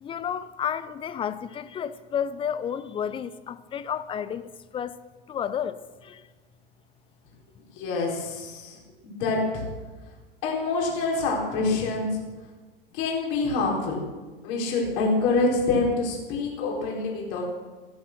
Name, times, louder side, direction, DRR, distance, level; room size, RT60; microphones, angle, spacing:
voice 1, 0.0-5.0 5.3-6.2, left 8 dB, 20° left, 0.6 m, -31 dB
voice 2, 7.8-8.8 9.0-9.6 10.4-12.2 12.9-14.0 14.4-17.4, left 3 dB, 45° left, 4.5 m, -26 dB
15.0 x 11.5 x 6.1 m
figure-of-eight pair, 90°, 30 cm